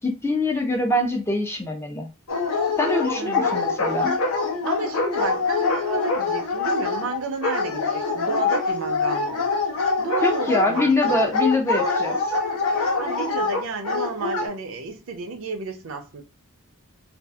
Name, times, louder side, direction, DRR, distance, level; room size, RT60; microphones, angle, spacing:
voice 1, 0.0-2.1 2.8-4.2 10.2-12.4, left 2 dB, 10° left, 0.4 m, -24 dB
Dog, 2.3-14.5, left 4 dB, 85° left, 0.9 m, -24 dB
voice 2, 3.1-3.6 4.6-9.5 10.0-11.3 13.0-16.2, right 4 dB, 65° right, 0.5 m, -31 dB
2.6 x 2.4 x 2.3 m
head